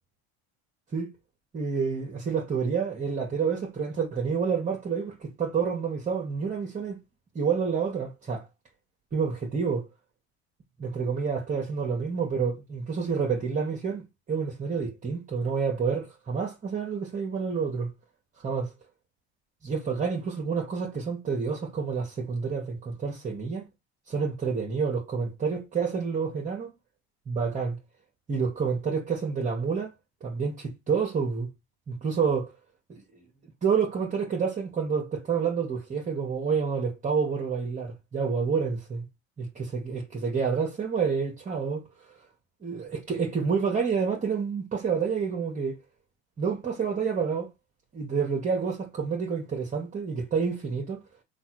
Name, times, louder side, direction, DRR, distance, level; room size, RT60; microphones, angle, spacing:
voice 1, 1.5-7.0 7.3-8.5 9.1-9.9 10.8-17.9 18.4-18.7 19.6-23.7 24.1-26.7 27.3-27.8 28.3-29.9 30.2-31.5 31.9-32.5 32.9-33.2 33.6-39.0 39.4-41.8 42.6-45.8 46.4-47.5 47.9-51.0, right 5 dB, 25° right, 1.1 m, -28 dB
3.4 x 2.5 x 4.4 m
supercardioid pair, 105°, 33 cm